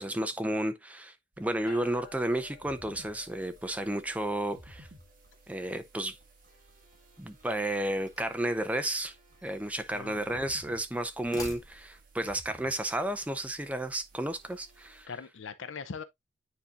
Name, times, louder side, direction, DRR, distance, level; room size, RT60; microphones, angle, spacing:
voice 1, 0.0-4.9 5.5-6.2 7.2-9.2 9.4-15.1, right 1 dB, 5° right, 0.6 m, -32 dB
sound 1, 1.3-15.1, right 1 dB, 40° right, 1.9 m, -57 dB
sound 2, 1.7-13.2, left 5 dB, 50° left, 2.4 m, -58 dB
sound 3, 7.7-8.5 9.4-10.5 11.1-12.2, left 1 dB, 15° left, 1.4 m, -47 dB
voice 2, 9.9-10.4 15.1-16.0, left 5 dB, 65° left, 0.6 m, -41 dB
9.6 x 4.3 x 2.4 m
head